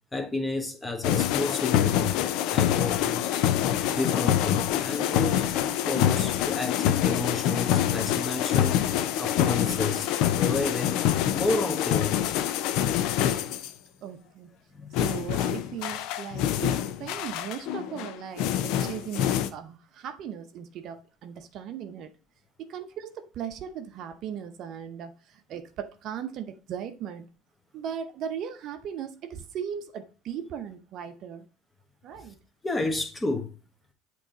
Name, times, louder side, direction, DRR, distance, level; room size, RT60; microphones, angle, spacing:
voice 1, 0.1-3.4 3.9-8.9 9.2-10.1 10.4-11.0 11.3-12.3 14.7-15.2 32.2-32.3 32.6-33.5, left 3 dB, 15° left, 1.4 m, -31 dB
sound 1, 1.0-13.7 14.9-19.5, left 11 dB, 60° left, 0.5 m, -26 dB
voice 2, 14.0-14.6 14.9-22.1 22.6-27.3 27.7-31.5 32.0-32.4, right 8 dB, 50° right, 0.6 m, -38 dB
8.1 x 3.1 x 3.8 m
hypercardioid pair, 70°, 0 cm